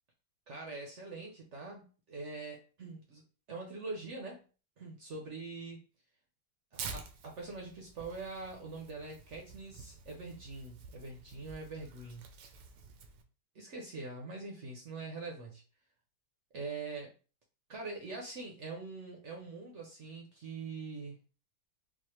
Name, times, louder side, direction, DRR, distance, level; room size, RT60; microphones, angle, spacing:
voice 1, 0.5-3.2 3.5-4.4 4.8-5.8 6.7-12.3 13.5-15.6 16.5-17.1 17.7-21.2, right 3 dB, 55° right, 0 dB, 0.8 m, -43 dB
Tearing, 6.7-13.2, right 5 dB, 80° right, 1.2 m, -49 dB
4.1 x 2.5 x 3.0 m, 0.36 s
omnidirectional pair, 1.9 m